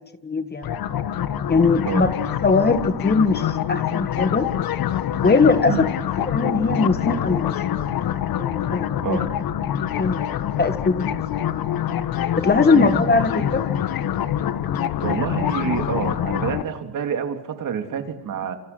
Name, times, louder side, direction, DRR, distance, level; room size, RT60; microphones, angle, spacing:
voice 1, 0.2-0.7 1.5-2.1 2.4-4.5 5.2-5.9 6.3-7.5 8.4-9.2 10.0-11.2 12.4-13.6, left 4 dB, 25° left, 10 dB, 1.7 m, -20 dB
sound 1, 0.6-16.6, left 10 dB, 55° left, 1.7 m, -25 dB
voice 2, 15.0-18.6, right 7 dB, 45° right, 6 dB, 3.3 m, -27 dB
28.5 x 27.0 x 6.2 m, 0.81 s
cardioid pair, 110°, 42 cm